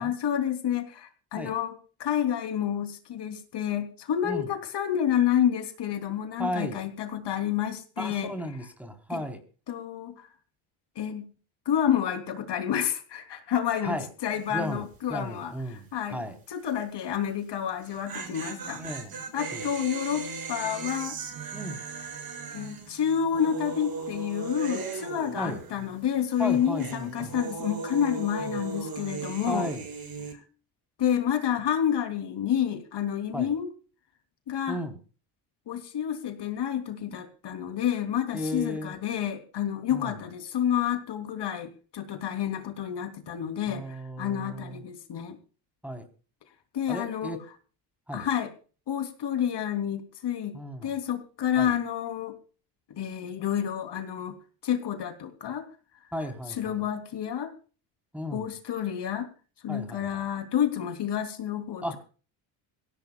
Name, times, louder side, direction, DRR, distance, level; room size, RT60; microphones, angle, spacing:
voice 1, 0.0-8.3 9.1-9.2 9.7-10.3 10.9-11.3 11.6-16.2 16.5-18.8 19.3-21.2 22.5-29.7 31.0-33.7 34.5-34.8 35.7-45.4 46.7-47.4 48.1-48.5 48.9-52.4 52.9-54.4 54.6-55.7 56.5-57.5 58.3-59.3 59.6-61.8, left 9 dB, 55° left, 7 dB, 3.2 m, -29 dB
voice 2, 6.4-6.8 8.0-9.4 13.8-14.1 14.5-16.4 18.7-19.1 19.5-19.7 21.5-21.8 25.3-25.6 26.4-27.4 28.4-28.6 29.5-29.9 33.3-33.5 34.7-35.0 38.3-38.9 39.9-40.2 43.7-44.8 45.8-46.0 46.9-47.4 48.1-48.3 50.5-50.9 51.6-51.7 56.1-56.8 58.1-58.5 59.7-60.2 61.8-62.0, equal, 5° right, 6 dB, 3.8 m, -35 dB
sound 1, 14.3-14.7 14.9-15.0 17.7-26.0 26.3-30.3, right 4 dB, 45° right, 6.5 m, -38 dB
23.0 x 17.0 x 2.3 m, 0.38 s
cardioid pair, 95°, 48 cm